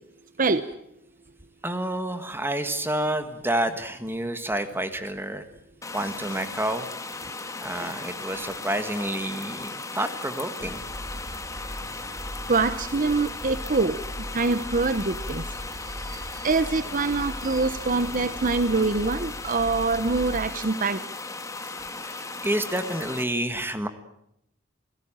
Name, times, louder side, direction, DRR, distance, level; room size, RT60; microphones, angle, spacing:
voice 1, 1.6-5.4 5.9-6.9 7.6-10.8 22.0-23.9, right 1 dB, 10° right, 9 dB, 1.6 m, -29 dB
sound 1, 5.8-23.2, left 3 dB, 15° left, 1.8 m, -37 dB
sound 2, 10.6-20.5, equal, 85° right, 3.5 m, -39 dB
voice 2, 12.5-15.4 16.0-21.0, right 3 dB, 45° right, 13 dB, 0.9 m, -25 dB
28.5 x 17.0 x 8.9 m, 0.77 s
head